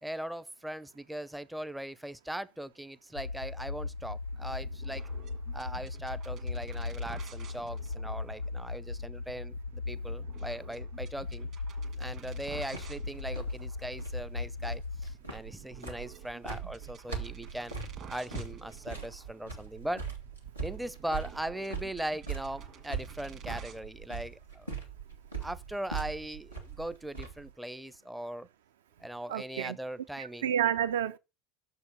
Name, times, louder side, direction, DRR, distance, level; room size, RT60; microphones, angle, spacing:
voice 1, 0.0-5.1 5.5-11.5 11.9-17.7 18.1-20.1 20.6-24.7 25.4-28.5 29.0-30.5, right 1 dB, 5° right, 0.5 m, -39 dB
sound 1, 3.2-15.1, left 3 dB, 85° left, 0.4 m, -38 dB
sound 2, 4.3-23.8, right 7 dB, 40° right, 1.6 m, -53 dB
sound 3, 12.7-27.5, right 5 dB, 90° right, 1.7 m, -41 dB
voice 2, 29.3-29.8 30.2-31.2, right 10 dB, 65° right, 0.6 m, -30 dB
6.6 x 4.6 x 6.2 m
figure-of-eight pair, 70°, 0 cm